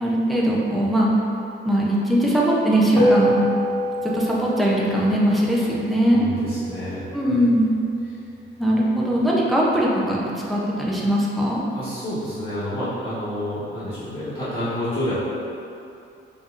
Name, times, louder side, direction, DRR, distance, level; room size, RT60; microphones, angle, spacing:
voice 1, 0.0-1.1 1.6-3.4 4.1-6.2 7.1-7.7 8.6-10.2 10.5-11.6, right 1 dB, ahead, -5 dB, 0.5 m, -20 dB
sound 1, 3.0-7.6, left 1 dB, 20° left, 0.9 m, -26 dB
voice 2, 6.1-7.0 8.1-8.2 11.7-15.2, left 1 dB, 35° left, -15 dB, 1.3 m, -29 dB
5.3 x 2.8 x 2.4 m, 2.7 s
cardioid pair, 145°, 21 cm